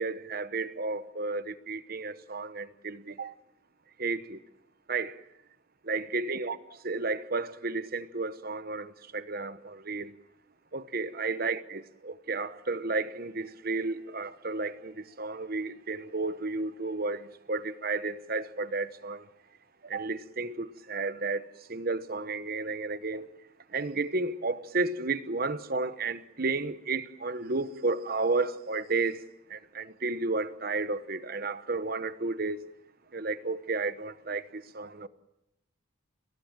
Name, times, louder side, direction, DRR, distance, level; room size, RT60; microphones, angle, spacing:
voice 1, 0.0-3.3 4.0-4.4 4.9-5.2 5.8-10.1 10.7-19.3 19.8-23.3 23.7-29.2 29.5-32.6 33.1-35.1, right 3 dB, 45° right, 1.0 m, -32 dB
29.5 x 20.0 x 7.4 m
head